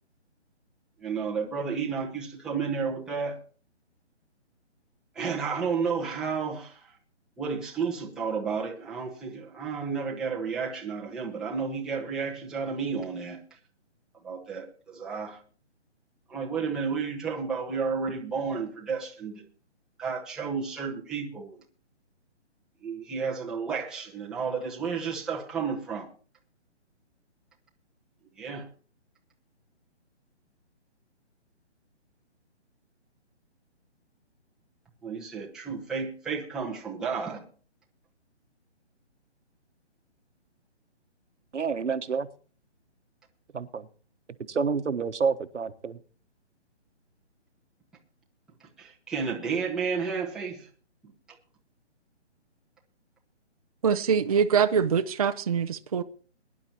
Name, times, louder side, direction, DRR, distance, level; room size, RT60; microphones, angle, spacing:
voice 1, 1.0-3.4 5.1-6.9 7.4-13.4 14.2-15.4 16.3-19.4 20.0-21.6 22.8-26.1 28.4-28.7 35.0-37.4 48.6-50.7, right 5 dB, ahead, 0.8 m, -32 dB
voice 2, 41.5-42.3 43.5-43.9 44.5-46.0, right 5 dB, 90° right, 1.2 m, -28 dB
voice 3, 53.8-56.0, right 7 dB, 30° right, 0.6 m, -24 dB
22.0 x 10.5 x 2.9 m
hypercardioid pair, 160°, 35 cm